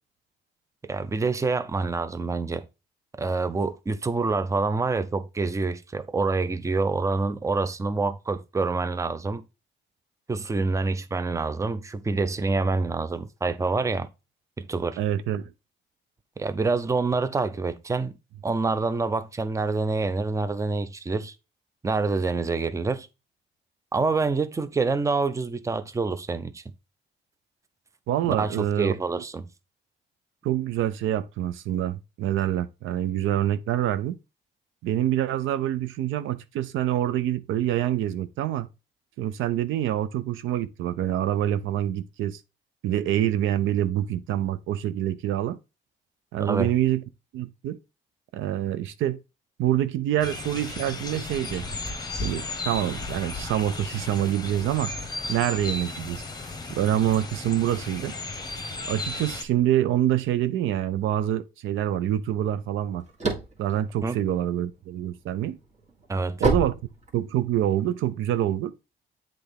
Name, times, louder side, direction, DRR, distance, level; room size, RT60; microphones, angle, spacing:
voice 1, 0.8-2.6 3.2-9.4 10.3-14.1 14.6-15.0 16.4-18.2 18.4-21.3 21.8-23.1 23.9-26.6 28.3-29.5 46.4-46.7 64.0-64.2 66.1-66.4, right 3 dB, 15° right, 0.5 m, -26 dB
voice 2, 15.0-15.4 28.1-29.0 30.4-34.2 34.8-38.7 39.2-42.4 42.8-45.6 46.3-47.0 47.3-47.8 48.3-49.2 49.6-51.7 52.1-54.9 55.3-56.2 56.7-58.1 58.9-63.0 63.6-65.6 66.4-66.7 67.1-68.7, right 12 dB, 85° right, 0.5 m, -26 dB
sound 1, 50.2-59.4, left 3 dB, 20° left, 1.0 m, -35 dB
sound 2, 62.9-64.9 65.4-67.6, right 2 dB, 35° right, 1.7 m, -28 dB
7.8 x 3.5 x 3.4 m
cardioid pair, 90°, 20 cm